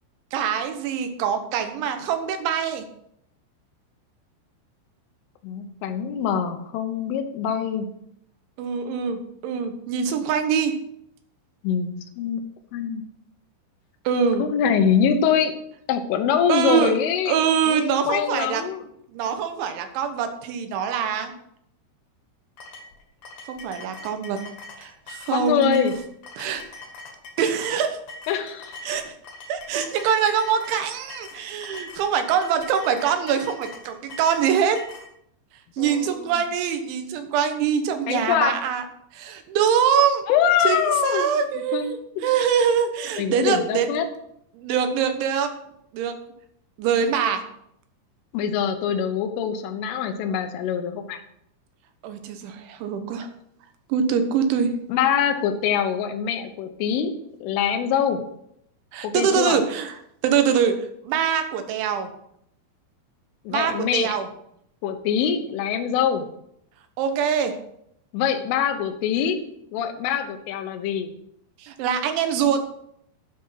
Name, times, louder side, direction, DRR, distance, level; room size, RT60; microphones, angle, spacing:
voice 1, 0.3-2.9 8.6-10.7 14.1-14.4 16.5-16.9 17.3-18.6 19.1-21.3 23.5-24.4 24.8-25.9 26.4-26.6 27.4-28.0 28.8-29.1 29.5-34.8 35.8-38.8 39.1-40.2 40.6-42.0 42.2-43.9 44.5-45.5 45.9-46.2 46.8-47.4 52.0-53.3 53.9-54.7 58.9-59.9 60.2-60.8 61.0-62.1 63.5-64.3 67.0-67.5 71.6-72.6, right 7 dB, 75° right, 7 dB, 3.4 m, -23 dB
voice 2, 5.4-7.9 11.6-12.4 12.7-13.0 14.4-15.5 15.9-18.9 25.3-25.9 28.3-28.8 35.8-36.3 38.1-38.6 40.3-41.3 41.7-41.9 42.2-42.4 43.2-44.1 48.3-51.2 54.9-57.1 57.4-58.2 59.0-59.6 63.5-64.2 64.8-66.3 68.1-69.4 69.7-71.1, left 8 dB, 85° left, 7 dB, 3.6 m, -24 dB
sound 1, 22.6-35.1, left 3 dB, 55° left, 2.9 m, -42 dB
12.0 x 6.3 x 5.8 m, 0.74 s
omnidirectional pair, 5.6 m